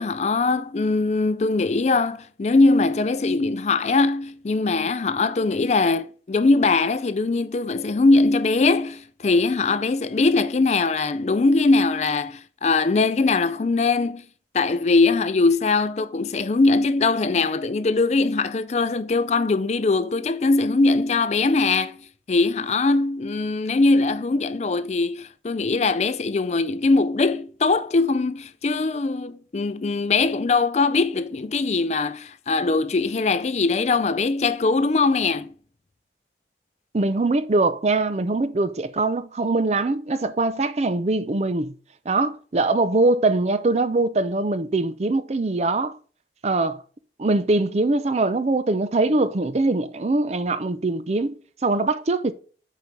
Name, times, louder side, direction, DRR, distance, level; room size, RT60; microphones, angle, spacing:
voice 1, 0.0-14.2 14.5-22.0 22.3-35.5, left 3 dB, 40° left, 0.4 m, -21 dB
voice 2, 36.9-41.8 42.1-46.0 46.4-46.8 47.2-51.4 51.6-52.3, right 2 dB, 40° right, 0.5 m, -22 dB
6.8 x 4.7 x 4.8 m
head